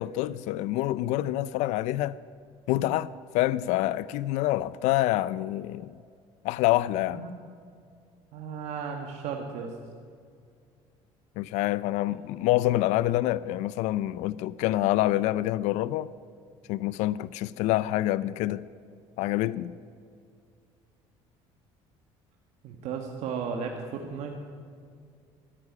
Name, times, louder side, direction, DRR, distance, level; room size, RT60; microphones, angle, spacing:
voice 1, 0.0-2.2 2.7-3.1 3.3-5.9 6.4-7.2 11.4-16.1 16.7-18.6 19.2-19.7, left 15 dB, 75° left, 0.4 m, -26 dB
voice 2, 8.3-9.7 22.6-24.3, right 6 dB, 70° right, 1.5 m, -34 dB
14.0 x 10.0 x 9.7 m
supercardioid pair, 100°, 12 cm